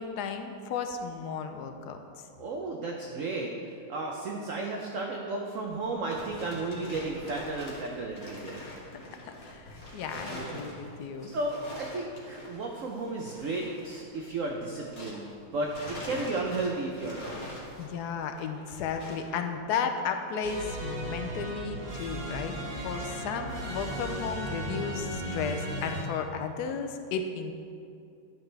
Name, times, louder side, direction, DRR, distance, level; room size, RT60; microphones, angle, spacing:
voice 1, 0.0-2.0 8.6-11.3 17.8-27.5, left 6 dB, 70° left, 6 dB, 1.0 m, -34 dB
voice 2, 2.4-3.5 3.9-8.6 10.3-10.7 11.2-17.6, right 2 dB, 70° right, 0 dB, 0.7 m, -34 dB
sound 1, 5.7-15.3 15.6-19.4, left 1 dB, 30° left, 1.4 m, -44 dB
sound 2, 20.4-26.0, right 1 dB, 35° right, 0.7 m, -36 dB
10.5 x 5.9 x 3.3 m, 2.5 s
omnidirectional pair, 2.1 m